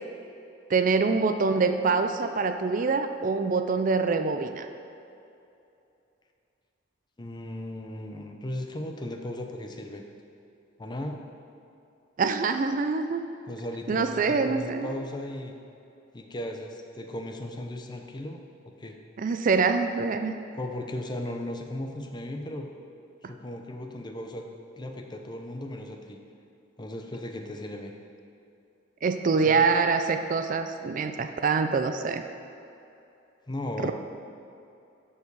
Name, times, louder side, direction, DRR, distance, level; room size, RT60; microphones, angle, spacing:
voice 1, 0.7-4.7 12.2-13.2 13.9-14.9 19.2-20.3 29.0-32.2 33.8-33.9, right 4 dB, 45° right, 8 dB, 0.4 m, -25 dB
voice 2, 7.2-10.0 10.8-11.2 13.5-15.5 16.1-18.4 18.8-19.0 20.6-22.7 23.2-24.4 24.8-26.2 26.8-27.9 29.4-29.6 33.5-33.9, left 1 dB, 25° left, 3 dB, 0.6 m, -36 dB
12.5 x 4.7 x 4.7 m, 2.7 s
head